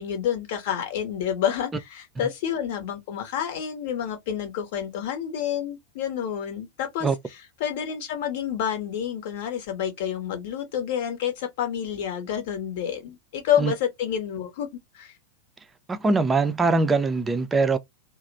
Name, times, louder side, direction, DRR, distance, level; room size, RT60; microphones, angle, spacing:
voice 1, 0.0-7.1 7.6-14.7 14.9-15.1, left 9 dB, 50° left, 0.8 m, -29 dB
voice 2, 15.9-17.8, right 3 dB, 15° right, 0.4 m, -22 dB
2.8 x 2.0 x 2.5 m
figure-of-eight pair, 90°, 0 cm